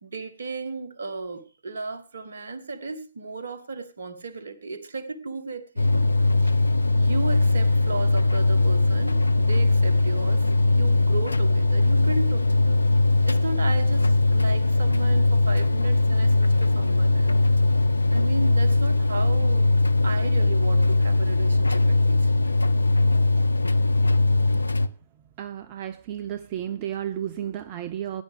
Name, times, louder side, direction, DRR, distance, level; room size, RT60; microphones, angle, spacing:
voice 1, 0.0-6.1 6.4-6.5 6.9-12.8 13.2-17.4 18.1-19.7 20.0-22.5 24.5-24.6, right 3 dB, 60° right, 1.5 m, -35 dB
sound 1, 5.8-24.9, left 2 dB, 80° left, 0.6 m, -20 dB
voice 2, 25.4-28.2, right 10 dB, 35° right, 0.7 m, -32 dB
18.0 x 10.5 x 3.5 m
figure-of-eight pair, 120°, 0 cm